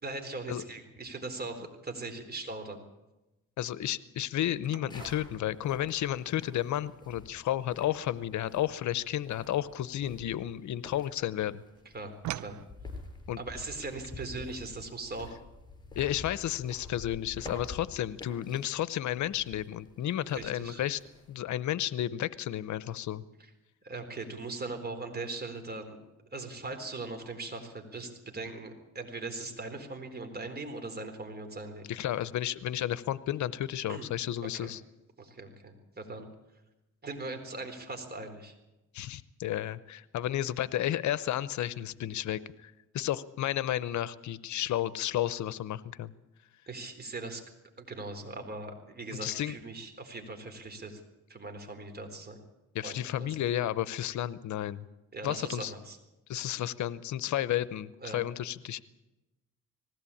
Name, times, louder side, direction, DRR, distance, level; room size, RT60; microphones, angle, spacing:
voice 1, 0.0-2.8 11.9-12.6 13.4-15.4 20.3-20.8 23.4-23.5 23.8-26.0 26.3-31.9 33.9-34.0 34.4-34.7 35.2-36.3 37.0-38.5 46.7-47.4 47.8-51.0 51.3-52.4 52.8-53.4 55.1-56.0 58.0-58.2, right 3 dB, 30° right, 5 dB, 4.0 m, -40 dB
voice 2, 3.6-11.5 13.3-13.4 16.0-21.0 21.3-23.2 31.9-34.8 38.9-46.1 49.2-49.5 52.7-54.8 55.2-55.7 56.3-58.8, left 12 dB, 70° left, 17 dB, 0.8 m, -32 dB
sound 1, 4.6-11.1 11.4-12.7, right 14 dB, 70° right, 0.7 m, -46 dB
sound 2, 4.9-21.4, left 2 dB, 15° left, 6.9 m, -49 dB
19.5 x 17.0 x 8.6 m, 0.99 s
cardioid pair, 90°, 30 cm